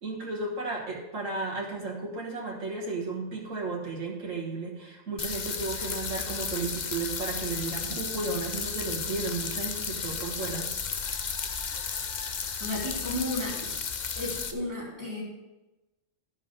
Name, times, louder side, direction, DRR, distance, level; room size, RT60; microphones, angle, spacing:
voice 1, 0.0-10.7, right 3 dB, 75° right, -3 dB, 1.9 m, -34 dB
sound 1, 5.2-14.5, left 6 dB, 45° left, 0.6 m, -33 dB
voice 2, 12.6-13.8 14.2-15.2, left 1 dB, 15° right, -5 dB, 3.1 m, -33 dB
13.0 x 5.5 x 5.2 m, 1.0 s
omnidirectional pair, 1.3 m